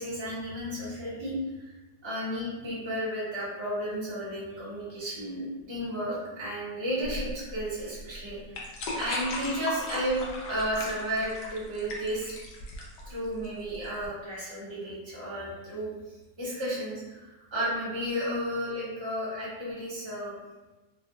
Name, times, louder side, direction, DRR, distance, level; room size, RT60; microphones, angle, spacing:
voice 1, 0.0-1.7 2.0-12.3 13.1-15.9 16.4-17.2 17.5-20.3, equal, 25° right, -9 dB, 0.6 m, -33 dB
sound 1, 7.0-14.1, left 2 dB, 75° left, 1.2 m, -37 dB
3.3 x 2.1 x 2.6 m, 1.1 s
omnidirectional pair, 2.0 m